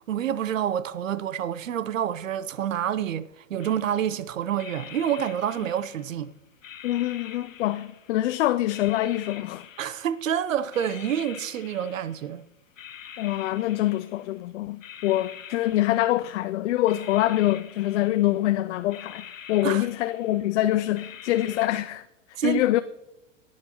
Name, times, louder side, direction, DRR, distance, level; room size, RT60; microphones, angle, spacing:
voice 1, 0.1-6.3 9.8-12.4 19.6-19.9 22.3-22.8, right 9 dB, 80° right, 0.7 m, -28 dB
sound 1, 3.6-4.2 4.6-6.2 6.6-8.3 8.7-10.3 10.7-12.4 12.8-14.4 14.8-16.4 16.8-18.5 18.9-20.5 20.9-21.7, left 8 dB, 85° left, 1.0 m, -45 dB
voice 2, 6.8-9.6 13.2-22.0 22.4-22.8, left 15 dB, 65° left, 0.5 m, -25 dB
19.5 x 7.5 x 2.9 m
hypercardioid pair, 105°, 38 cm